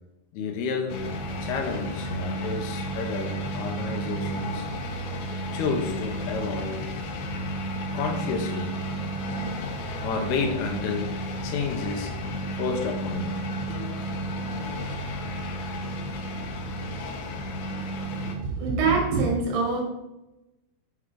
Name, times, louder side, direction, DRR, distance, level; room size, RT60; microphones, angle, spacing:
voice 1, 0.3-1.1 1.4-4.7 5.5-6.9 7.9-8.8 10.0-11.1 11.4-12.2 12.5-14.0, left 4 dB, 85° left, 5 dB, 2.8 m, -30 dB
sound 1, 0.9-18.4, right 1 dB, 70° left, 2.2 m, -32 dB
voice 2, 18.2-19.8, right 4 dB, 80° right, 0 dB, 3.8 m, -24 dB
7.9 x 4.7 x 4.9 m, 0.96 s
omnidirectional pair, 4.5 m